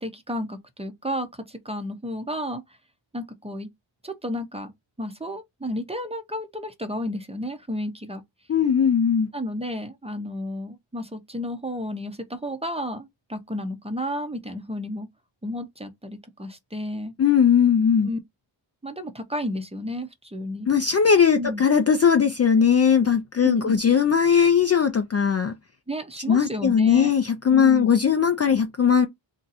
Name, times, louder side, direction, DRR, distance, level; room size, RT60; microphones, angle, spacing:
voice 1, 0.0-2.6 3.1-3.7 4.0-4.7 5.0-8.2 9.3-15.1 15.4-17.1 18.0-18.2 18.8-20.7 21.4-21.6 23.4-23.7 25.9-27.1 27.5-27.9, equal, 15° right, 0.6 m, -32 dB
voice 2, 8.5-9.3 17.2-18.1 20.7-25.5 26.3-29.1, left 7 dB, 35° left, 0.4 m, -19 dB
2.7 x 2.3 x 4.0 m
cardioid pair, 75°, 49 cm